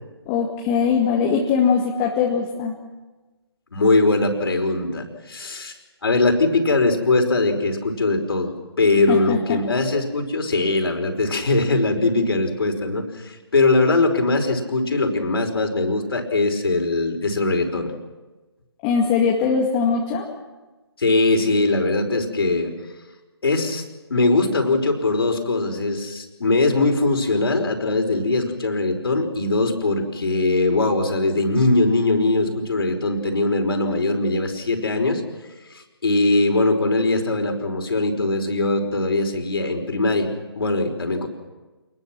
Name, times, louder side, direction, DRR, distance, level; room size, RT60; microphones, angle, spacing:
voice 1, 0.3-2.8 9.1-9.6 18.8-20.3, left 6 dB, 20° left, -1 dB, 2.2 m, -21 dB
voice 2, 3.7-5.7 6.0-17.9 21.0-22.7 23.4-23.8 24.1-35.2 35.7-40.3 40.6-41.3, left 2 dB, 60° left, 4 dB, 5.1 m, -21 dB
27.5 x 21.0 x 6.2 m, 1.2 s
figure-of-eight pair, 150°, 14 cm